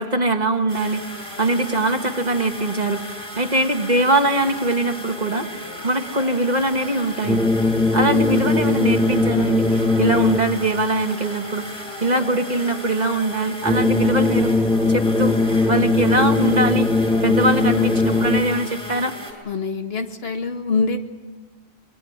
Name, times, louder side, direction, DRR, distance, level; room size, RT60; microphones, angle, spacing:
voice 1, 0.0-5.5 5.8-7.4 7.9-11.6 12.0-14.5 14.9-15.3 15.7-16.9 17.2-19.1, right 2 dB, 45° right, 6 dB, 1.8 m, -22 dB
sound 1, 0.7-19.3, equal, 30° left, 6.5 m, -35 dB
sound 2, 7.2-10.7 13.6-18.7, left 3 dB, ahead, 0.8 m, -19 dB
voice 2, 19.5-21.0, left 4 dB, 75° left, 5 dB, 2.0 m, -24 dB
26.0 x 21.5 x 8.7 m, 1.3 s
omnidirectional pair, 1.0 m